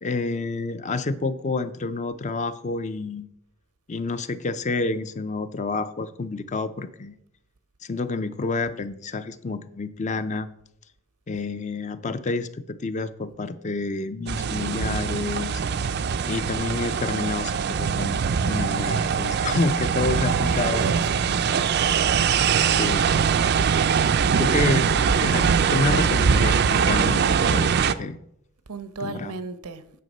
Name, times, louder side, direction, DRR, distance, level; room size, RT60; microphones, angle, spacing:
voice 1, 0.0-3.3 3.9-7.1 7.8-10.5 11.3-15.6 16.3-20.9 22.6-23.6 24.4-24.9 25.2-28.2 29.0-29.3, left 3 dB, 30° left, 0.4 m, -29 dB
sound 1, 14.3-27.9, right 6 dB, 45° right, 0.4 m, -22 dB
voice 2, 20.0-21.6 28.7-29.8, right 4 dB, 85° right, 0.8 m, -35 dB
9.3 x 6.6 x 5.3 m
head